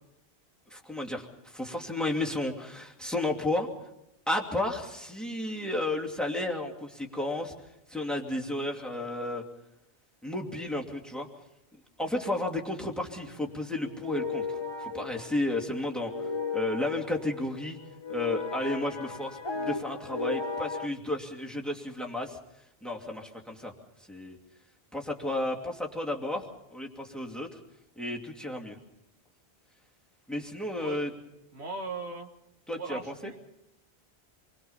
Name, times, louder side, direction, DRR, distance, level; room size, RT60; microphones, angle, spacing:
voice 1, 0.7-3.7 4.3-7.5 7.9-9.4 10.2-11.3 12.0-16.1 16.5-17.8 18.1-22.4 22.8-23.7 24.1-24.4 24.9-27.5 28.0-28.8 30.3-31.1 32.7-33.0, left 1 dB, ahead, 1 dB, 2.7 m, -32 dB
sound 1, 12.9-20.9, left 4 dB, 25° left, 1.2 m, -36 dB
voice 2, 31.5-32.3 32.8-33.4, right 3 dB, 75° right, 4 dB, 2.1 m, -38 dB
27.5 x 22.0 x 5.7 m, 0.83 s
omnidirectional pair, 1.1 m